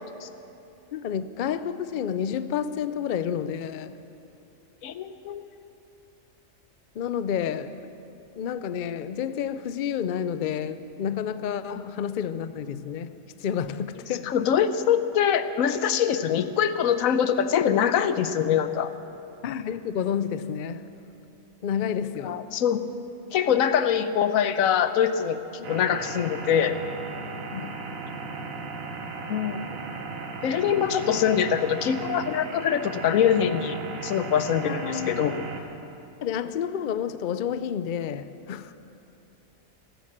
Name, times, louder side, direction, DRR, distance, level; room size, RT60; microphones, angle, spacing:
voice 1, 0.9-4.0 7.0-7.8 8.4-14.3 19.4-20.9 21.6-22.4 27.5-27.9 34.6-35.3 36.2-38.7, left 8 dB, 60° left, 0.5 m, -30 dB
voice 2, 4.8-5.5 11.7-11.8 14.3-18.9 22.2-22.8 23.3-25.4 25.7-26.8 29.3-29.7 30.4-35.4, left 8 dB, 80° left, 1.1 m, -24 dB
sound 1, 25.6-35.6, right 3 dB, 80° right, 1.6 m, -36 dB
14.5 x 13.0 x 7.3 m
omnidirectional pair, 1.4 m